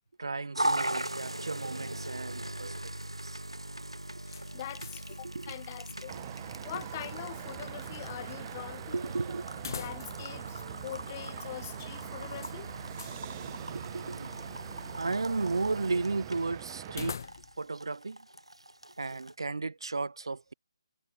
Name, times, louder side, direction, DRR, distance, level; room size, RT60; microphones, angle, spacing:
voice 1, 0.2-2.9 3.2-3.4 5.2-5.5 8.9-9.4 13.4-17.2 17.6-18.3 19.0-20.5, right 3 dB, 65° right, 0.9 m, -35 dB
sound 1, 0.5-19.3, right 1 dB, 85° right, 1.0 m, -40 dB
sound 2, 4.3-5.2 5.5-5.6 9.5-10.4 10.7-10.8 12.4-13.2 16.9-17.7, left 6 dB, 45° left, 1.1 m, -43 dB
voice 2, 4.3-6.2 6.6-8.9 9.8-12.7, left 14 dB, 25° left, 0.3 m, -43 dB
sound 3, 6.1-17.2, right 17 dB, 25° right, 0.7 m, -44 dB
figure-of-eight pair, 145°, 3 cm